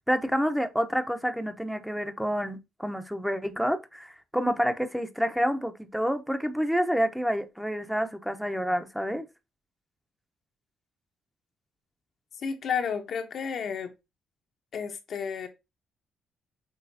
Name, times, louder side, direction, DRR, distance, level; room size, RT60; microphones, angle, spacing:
voice 1, 0.1-9.3, equal, ahead, 0.8 m, -28 dB
voice 2, 12.4-13.9 14.7-15.5, left 6 dB, 60° left, 1.0 m, -31 dB
6.2 x 3.1 x 2.7 m
cardioid pair, 90°, 0 cm